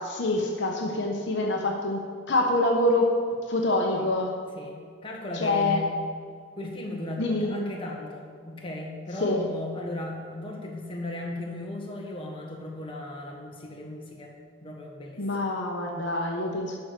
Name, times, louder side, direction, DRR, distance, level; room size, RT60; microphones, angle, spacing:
voice 1, 0.0-2.0 2.3-3.1 3.5-4.3 5.3-5.8 7.2-7.5 9.2-9.4 15.2-16.8, left 2 dB, 60° left, 1 dB, 1.0 m, -25 dB
voice 2, 4.5-5.9 6.5-14.3 14.6-15.3, left 1 dB, 25° left, -1 dB, 1.4 m, -36 dB
11.0 x 4.8 x 6.7 m, 2.1 s
head